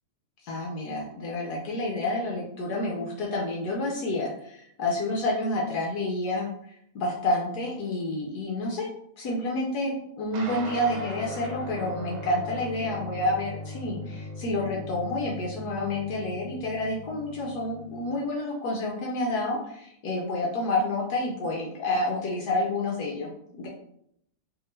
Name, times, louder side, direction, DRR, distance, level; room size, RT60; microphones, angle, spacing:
voice 1, 0.4-6.5 6.9-8.9 9.2-23.3 23.6-23.7, left 2 dB, 75° left, -2 dB, 0.9 m, -29 dB
sound 1, 10.3-18.1, left 1 dB, 85° right, 1.5 m, -39 dB
3.5 x 2.9 x 3.1 m, 0.75 s
omnidirectional pair, 2.3 m